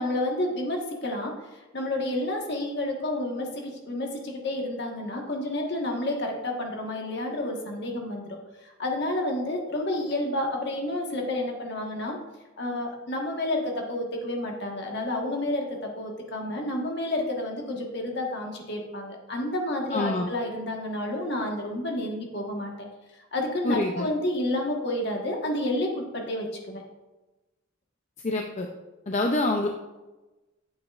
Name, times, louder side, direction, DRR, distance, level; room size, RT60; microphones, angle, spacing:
voice 1, 0.0-12.2 12.6-22.9 23.3-26.8, left 1 dB, 55° left, 1 dB, 1.4 m, -30 dB
voice 2, 19.9-20.3 23.6-24.1 28.2-28.7 29.1-29.7, left 2 dB, 35° left, 3 dB, 0.5 m, -26 dB
9.2 x 7.2 x 2.4 m, 1.1 s
head